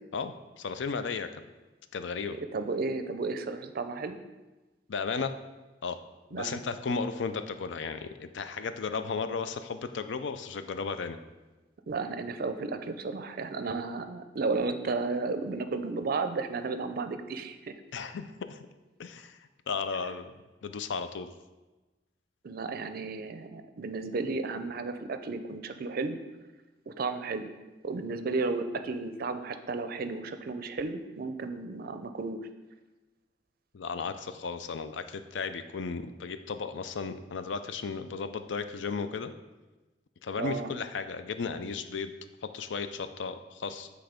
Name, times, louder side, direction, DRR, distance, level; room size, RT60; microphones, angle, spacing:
voice 1, 0.1-1.4 1.9-2.4 4.9-5.3 5.8-6.0 6.3-11.2 17.9-18.7 19.0-19.4 19.7-21.3 33.7-39.3 40.2-42.1 42.4-43.9, left 5 dB, 90° left, 10 dB, 0.5 m, -35 dB
voice 2, 2.3-4.2 6.3-6.6 11.9-17.7 22.4-26.2 26.9-27.5 27.8-32.4 40.4-40.7, right 3 dB, 55° right, 9 dB, 0.4 m, -33 dB
8.0 x 3.3 x 5.0 m, 1.2 s
head